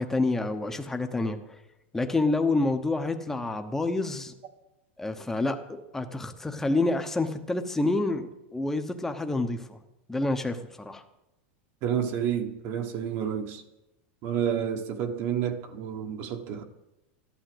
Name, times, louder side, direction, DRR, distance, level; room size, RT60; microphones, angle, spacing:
voice 1, 0.0-1.6 1.9-4.3 5.0-9.8 10.1-11.0, left 2 dB, 5° left, 0.9 m, -28 dB
voice 2, 11.8-13.6 14.2-16.6, right 8 dB, 45° right, 1.3 m, -30 dB
12.5 x 11.5 x 7.9 m
supercardioid pair, 155°, 6 cm